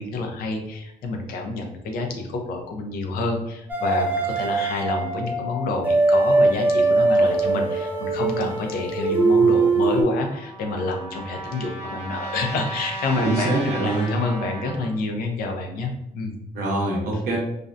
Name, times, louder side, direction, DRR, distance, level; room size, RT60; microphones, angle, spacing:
voice 1, 0.0-16.4 17.1-17.2, left 3 dB, 90° left, 2 dB, 0.5 m, -28 dB
sound 1, 3.7-10.0, right 3 dB, 10° right, 0.4 m, -21 dB
Trumpet, 10.2-14.9, right 2 dB, 50° left, 0.8 m, -35 dB
voice 2, 13.2-14.1 16.5-17.4, right 2 dB, 85° right, -2 dB, 0.6 m, -23 dB
2.5 x 2.1 x 2.5 m, 0.86 s
cardioid pair, 125°, 15 cm